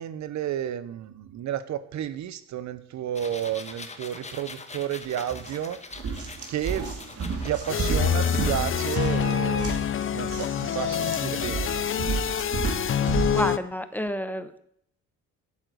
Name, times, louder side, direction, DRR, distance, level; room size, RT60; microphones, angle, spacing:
voice 1, 0.0-5.9 6.5-6.9 7.4-9.7 10.1-11.7, right 10 dB, 70° right, 15 dB, 0.8 m, -31 dB
sound 1, 3.2-9.1, left 3 dB, 20° left, 1.3 m, -43 dB
sound 2, 5.3-5.5 5.9-13.5, right 5 dB, 50° right, 2.4 m, -32 dB
sound 3, 7.7-13.6, left 8 dB, 45° left, 0.7 m, -26 dB
voice 2, 13.3-14.6, equal, 5° left, 11 dB, 0.9 m, -29 dB
8.2 x 7.4 x 8.0 m, 0.69 s
cardioid pair, 90°, 30 cm